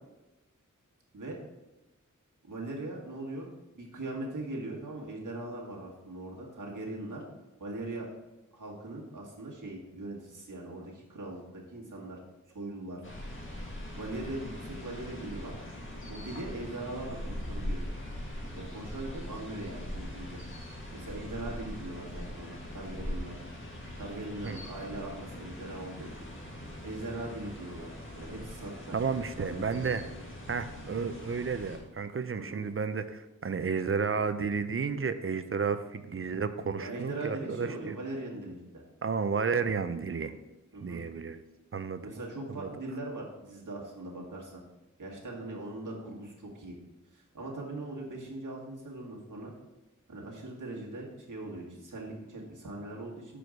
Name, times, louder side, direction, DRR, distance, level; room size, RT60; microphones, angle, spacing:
voice 1, 2.5-3.5 3.7-7.2 7.6-8.1 8.5-12.2 12.5-13.0 13.9-15.5 16.1-17.8 18.5-20.4 20.9-23.4 24.0-26.3 26.8-30.0 32.4-32.6 36.8-38.6 40.7-41.0 42.0-44.6 45.0-46.8 47.1-49.5 50.1-53.4, right 2 dB, 80° right, -3 dB, 1.8 m, -40 dB
sound 1, 13.0-31.8, left 1 dB, 40° left, 1.9 m, -41 dB
voice 2, 28.9-30.0 30.5-38.0 39.0-40.3 40.8-41.4 41.7-42.1 42.5-42.7, right 5 dB, 45° right, 10 dB, 0.5 m, -32 dB
6.1 x 5.0 x 5.1 m, 1.0 s
wide cardioid pair, 60°, 31 cm